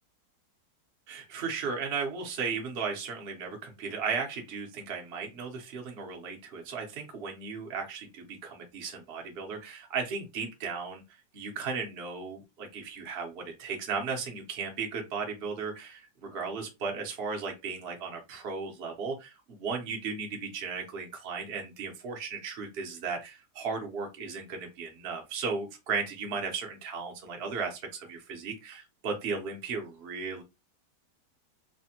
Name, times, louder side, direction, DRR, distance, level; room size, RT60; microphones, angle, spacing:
voice 1, 1.1-11.0 11.3-30.4, right 5 dB, 50° right, 1 dB, 0.7 m, -35 dB
3.2 x 2.1 x 2.8 m, 0.23 s
omnidirectional pair, 2.0 m